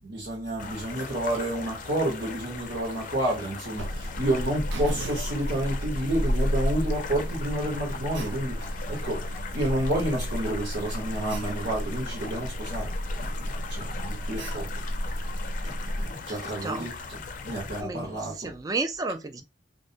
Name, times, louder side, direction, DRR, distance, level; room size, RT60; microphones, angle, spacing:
voice 1, 0.0-14.7 15.6-17.2 17.4-18.5, right 1 dB, 70° right, 1.1 m, -30 dB
sound 1, 0.6-17.8, left 5 dB, 50° left, 0.4 m, -40 dB
Alarm, 3.8-16.1, equal, 85° right, 0.5 m, -32 dB
voice 2, 16.3-16.9 17.8-18.1 18.4-19.4, right 3 dB, 20° right, 0.3 m, -32 dB
2.5 x 2.1 x 2.6 m
head